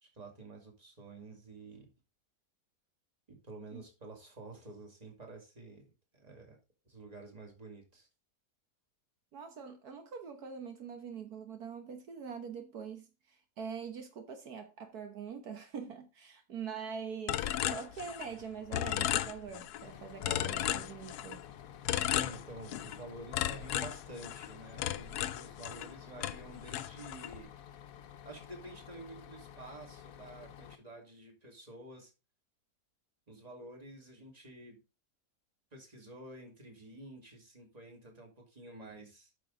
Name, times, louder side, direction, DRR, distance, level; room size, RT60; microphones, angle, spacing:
voice 1, 0.0-1.9 3.3-6.6 6.9-8.1 22.1-27.8 28.2-32.1 33.3-34.8 35.7-39.3, right 2 dB, 25° right, 2.3 m, -50 dB
voice 2, 9.3-21.4, right 6 dB, 75° right, 1.7 m, -44 dB
sound 1, 17.3-18.4 18.7-19.8 20.2-21.4 21.9-23.0 23.3-25.9 26.2-27.4, left 12 dB, 85° left, 1.2 m, -34 dB
Bus, 19.8-30.8, left 9 dB, 65° left, 1.1 m, -52 dB
9.1 x 6.1 x 3.8 m
omnidirectional pair, 1.7 m